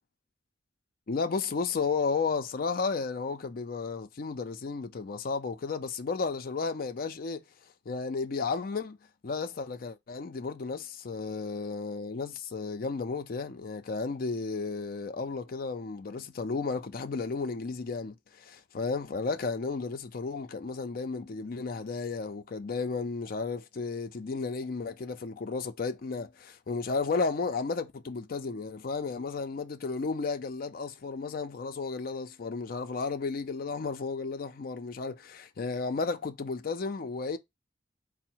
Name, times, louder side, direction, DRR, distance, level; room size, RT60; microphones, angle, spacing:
voice 1, 1.1-7.4 7.9-9.0 9.2-37.4, left 4 dB, 50° left, 0.4 m, -33 dB
3.8 x 2.0 x 4.4 m
head